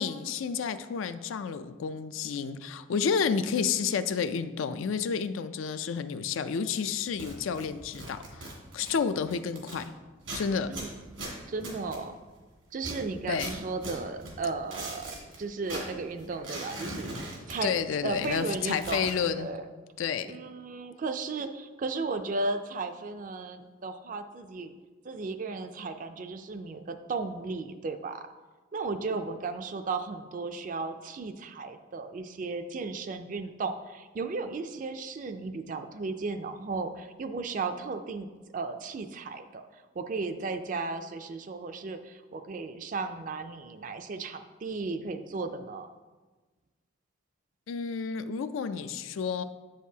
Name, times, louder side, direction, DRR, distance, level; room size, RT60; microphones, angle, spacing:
voice 1, 0.0-9.8 10.3-10.7 13.3-13.6 17.6-19.5 20.0-20.3 47.7-49.4, left 6 dB, 85° left, 11 dB, 0.4 m, -30 dB
sound 1, 7.1-9.9 10.2-12.4 12.8-15.4 15.6-17.9 18.1-19.1, right 1 dB, 90° right, 2.1 m, -41 dB
voice 2, 11.5-12.2 12.7-15.1 15.4-17.8 18.0-19.7 20.3-24.7 25.0-28.3 28.7-38.3 38.5-45.9, right 3 dB, 40° right, 8 dB, 0.3 m, -35 dB
7.9 x 6.4 x 2.8 m, 1.3 s
head